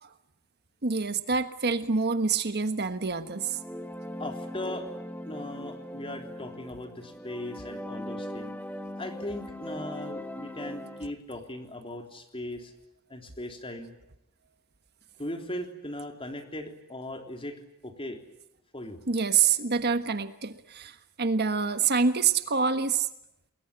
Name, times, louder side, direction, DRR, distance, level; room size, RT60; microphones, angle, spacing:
voice 1, 0.8-3.6 19.1-23.1, right 5 dB, 50° right, 10 dB, 1.3 m, -26 dB
sound 1, 3.2-11.1, left 1 dB, 10° left, 1.4 m, -40 dB
voice 2, 4.2-4.9 5.3-8.5 9.0-12.7 13.1-13.9 15.2-17.6 17.8-18.2 18.7-19.0, left 1 dB, 25° left, 4 dB, 3.4 m, -38 dB
28.5 x 21.5 x 8.9 m, 0.79 s
head